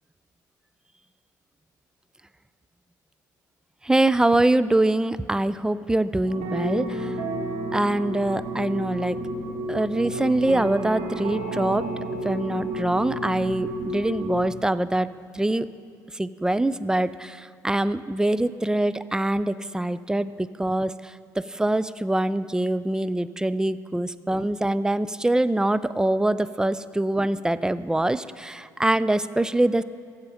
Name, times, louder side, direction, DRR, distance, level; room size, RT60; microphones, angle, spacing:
voice 1, 3.8-7.1 7.7-9.2 9.7-11.9 12.2-15.1 15.3-15.7 16.1-20.9 21.5-29.8, right 1 dB, 5° right, 16 dB, 0.3 m, -24 dB
sound 1, 6.2-14.5, right 1 dB, 65° right, 1.4 m, -31 dB
15.0 x 5.0 x 5.5 m, 2.3 s
hypercardioid pair, 55°, 10 cm